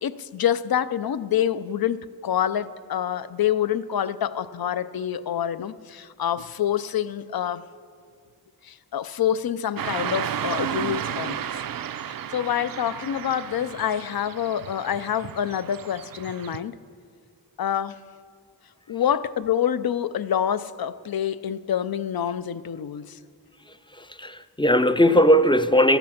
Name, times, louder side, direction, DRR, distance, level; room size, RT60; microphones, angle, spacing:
voice 1, 0.0-7.6 8.6-11.5 12.1-16.8 17.6-18.0 18.9-23.2, left 9 dB, 65° left, 0.5 m, -27 dB
Car passing by / Traffic noise roadway noise, 9.8-16.6, right 9 dB, 65° right, 0.5 m, -33 dB
voice 2, 23.7-26.0, equal, 15° left, 0.4 m, -19 dB
14.0 x 13.0 x 5.8 m
wide cardioid pair, 100°, 38 cm